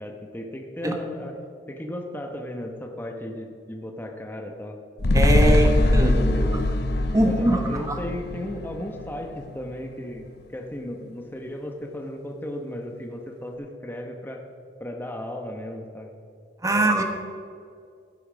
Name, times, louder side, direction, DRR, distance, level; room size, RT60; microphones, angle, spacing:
voice 1, 0.0-1.3 1.7-4.8 5.5-6.7 7.2-14.4 14.8-16.1 16.7-17.0, left 1 dB, 10° left, 2 dB, 0.9 m, -35 dB
sound 1, 5.0-9.5 9.9-10.0, left 1 dB, 60° left, 0.8 m, -22 dB
voice 2, 5.1-6.3 7.1-8.0 16.6-17.0, right 1 dB, 20° right, 4 dB, 1.1 m, -22 dB
16.0 x 8.4 x 5.1 m, 2.3 s
head